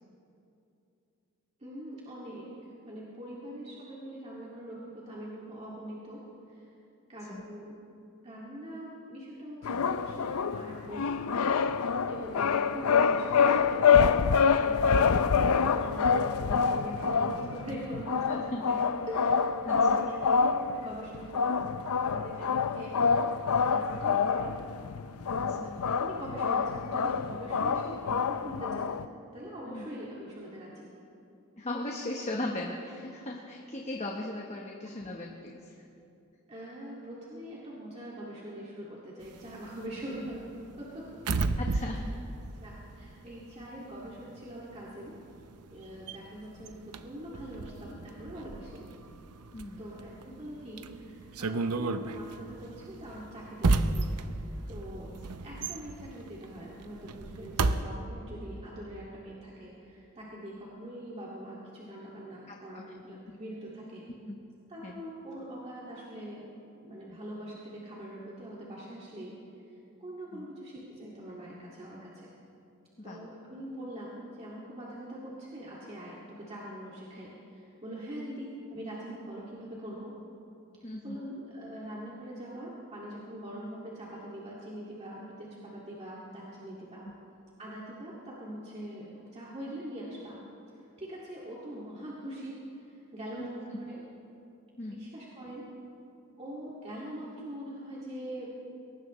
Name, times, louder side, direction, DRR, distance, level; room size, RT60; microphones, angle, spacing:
voice 1, 1.6-2.6 2.9-6.2 6.5-6.6 7.1-7.8 8.2-11.5 12.1-13.9 14.4-18.8 19.1-19.4 19.7-21.6 22.0-24.6 25.4-29.0 29.3-30.9 34.8-35.2 36.5-40.4 40.8-41.2 41.7-42.0 42.6-45.1 45.7-48.8 49.8-55.1 55.4-64.0 64.7-69.3 70.0-72.3 73.0-80.1 80.8-87.1 87.6-90.4 91.0-92.6 92.9-94.0 94.9-95.7 96.4-98.7, right 1 dB, 30° right, -6 dB, 2.2 m, -43 dB
sound 1, 9.6-29.0, left 6 dB, 70° left, 0.5 m, -26 dB
voice 2, 18.3-18.6 19.6-20.1 25.3-25.7 29.7-29.9 31.6-35.7 41.6-42.1 49.5-49.9 62.5-62.8 64.3-64.4 64.8-65.0 70.3-70.5 73.0-73.2 80.8-81.2 93.4-93.5 94.8-95.0, left 1 dB, 30° left, 0 dB, 1.1 m, -38 dB
sound 2, 39.2-43.6 43.9-57.8, right 3 dB, 90° right, 0.7 m, -33 dB
22.5 x 19.0 x 3.2 m, 2.7 s
head